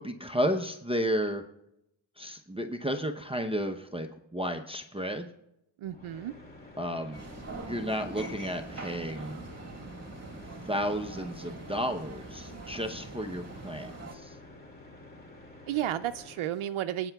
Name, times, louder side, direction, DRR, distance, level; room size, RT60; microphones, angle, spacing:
voice 1, 0.0-1.4 2.2-5.3 6.8-7.2 7.6-9.4 10.6-14.4, equal, 10° right, 4 dB, 0.7 m, -32 dB
sound 1, 5.8-16.5, left 2 dB, 20° left, 2.2 m, -50 dB
voice 2, 5.8-6.3 15.7-17.1, right 11 dB, 85° right, 8 dB, 0.6 m, -32 dB
sound 2, 7.1-14.1, right 3 dB, 30° right, 1.8 m, -43 dB
26.0 x 9.0 x 2.3 m, 0.82 s
wide cardioid pair, 85°, 48 cm